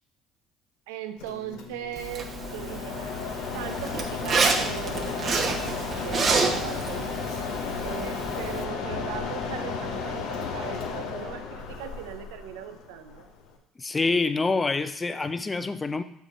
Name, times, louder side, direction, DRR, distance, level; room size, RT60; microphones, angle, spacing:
voice 1, 0.9-3.2 3.5-7.1 7.8-13.2, right 11 dB, 75° right, 10 dB, 0.5 m, -39 dB
Mechanisms, 1.2-13.6, left 5 dB, 70° left, 1.0 m, -34 dB
Zipper (clothing), 2.0-8.6, right 4 dB, 45° right, 1.0 m, -29 dB
voice 2, 13.8-16.0, left 3 dB, 25° left, 11 dB, 0.6 m, -26 dB
6.6 x 5.9 x 4.2 m, 0.72 s
hypercardioid pair, 55°, 0 cm